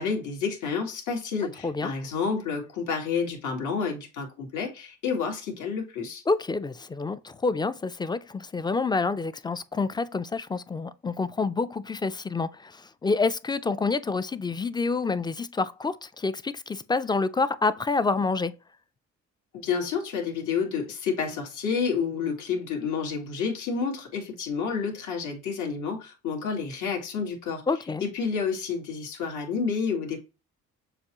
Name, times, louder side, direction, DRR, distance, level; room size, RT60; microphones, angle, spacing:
voice 1, 0.0-6.2 19.6-27.6 28.0-30.2, left 5 dB, 80° left, 1.8 m, -29 dB
voice 2, 6.3-18.5 27.7-28.0, left 4 dB, 15° left, 0.3 m, -28 dB
6.7 x 2.3 x 2.9 m
cardioid pair, 90°, 30 cm